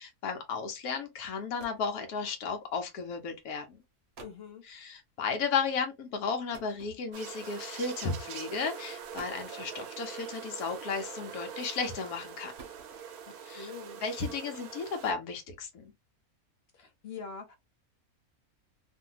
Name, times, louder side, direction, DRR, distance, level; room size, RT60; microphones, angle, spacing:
voice 1, 0.0-3.8 4.7-12.5 13.4-13.7 14.0-15.8, left 5 dB, 90° left, 1.2 m, -34 dB
sound 1, 1.0-1.1 1.3-2.0 3.0-3.2 3.8-3.9 4.1-4.5 6.5-7.4 8.3-8.5 9.0-9.6 10.9-11.4 12.2-13.3, right 5 dB, 55° right, 0.9 m, -51 dB
voice 2, 4.2-4.6 13.5-14.0 16.7-17.6, left 6 dB, 60° left, 0.7 m, -44 dB
sound 2, 7.1-15.1, right 7 dB, 90° right, 1.1 m, -43 dB
2.7 x 2.5 x 2.7 m
omnidirectional pair, 1.5 m